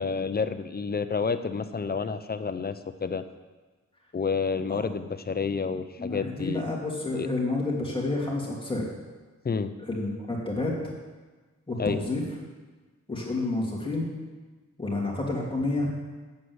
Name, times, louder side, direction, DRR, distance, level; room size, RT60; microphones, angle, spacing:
voice 1, 0.0-3.2 4.1-6.7 7.1-7.3 9.4-9.7 11.8-12.0, left 5 dB, 35° left, 10 dB, 0.6 m, -29 dB
voice 2, 6.0-8.8 9.9-10.9 11.7-12.2 13.1-14.1 14.8-15.9, left 2 dB, 15° left, -3 dB, 2.8 m, -29 dB
8.4 x 7.7 x 7.9 m, 1.3 s
wide cardioid pair, 125°, 29 cm